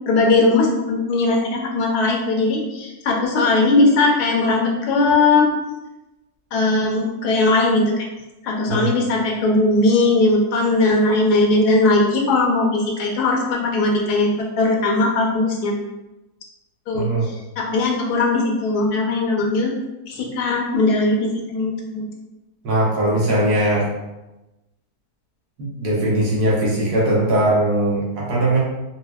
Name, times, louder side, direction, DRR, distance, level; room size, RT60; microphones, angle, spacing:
voice 1, 0.1-5.5 6.5-8.1 8.4-15.8 16.9-17.0 17.6-19.7 20.1-22.0, left 2 dB, 75° left, 0 dB, 1.2 m, -19 dB
voice 2, 16.9-17.3 22.6-23.9 25.6-28.6, right 1 dB, 75° right, -5 dB, 1.4 m, -20 dB
4.2 x 2.0 x 2.2 m, 1.0 s
omnidirectional pair, 1.7 m